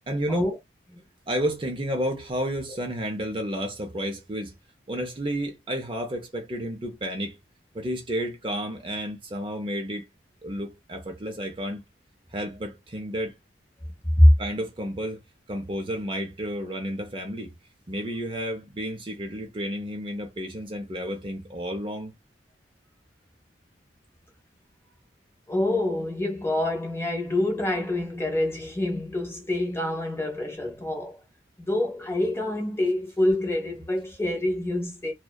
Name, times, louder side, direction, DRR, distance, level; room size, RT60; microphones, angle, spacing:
voice 1, 0.1-0.5 1.3-4.5 4.9-7.4 7.7-10.1 10.4-11.8 12.3-13.3 14.4-15.2 15.5-17.5 17.9-22.1, equal, 25° right, 0.4 m, -31 dB
voice 2, 25.5-31.2 31.6-35.1, left 1 dB, 15° left, 0.6 m, -25 dB
2.6 x 2.1 x 2.2 m
head